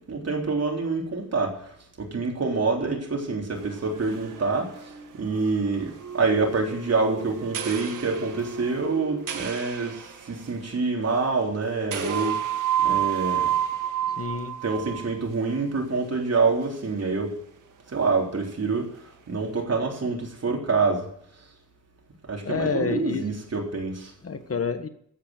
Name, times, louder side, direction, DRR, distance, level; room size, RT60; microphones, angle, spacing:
voice 1, 0.0-12.5 12.8-13.5 14.6-17.3 17.9-18.9 19.3-21.1 22.3-24.1, right 4 dB, 55° right, 0 dB, 3.8 m, -26 dB
sound 1, 3.5-10.7 11.0-11.3 11.9-15.2 15.5-15.6 16.6-16.7 18.9-19.0, right 9 dB, 90° right, 1.9 m, -31 dB
voice 2, 14.2-14.5 22.4-23.2 24.2-24.9, left 5 dB, 50° left, 9 dB, 1.5 m, -28 dB
14.0 x 8.7 x 8.0 m, 0.67 s
wide cardioid pair, 95°, 31 cm